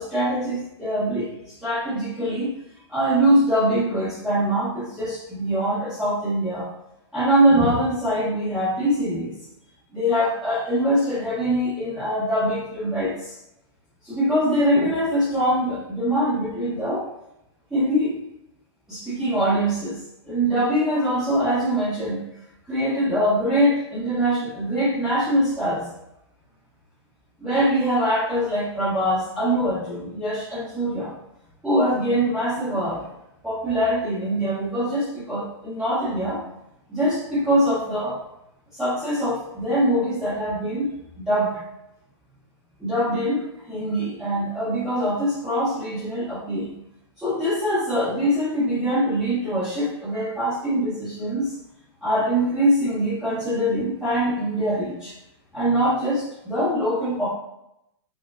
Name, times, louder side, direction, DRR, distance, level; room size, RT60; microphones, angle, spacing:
voice 1, 0.0-2.5 2.9-6.7 7.1-9.3 9.9-13.4 14.0-17.1 17.7-18.2 18.9-20.0 20.2-22.2 22.7-25.9 27.4-31.1 31.6-33.0 33.4-36.4 36.9-38.2 38.7-40.9 41.2-41.6 42.8-46.7 47.2-51.5 52.0-55.2 55.5-57.3, equal, 5° right, -11 dB, 1.0 m, -23 dB
4.8 x 2.1 x 2.5 m, 0.84 s
hypercardioid pair, 130°, 15 cm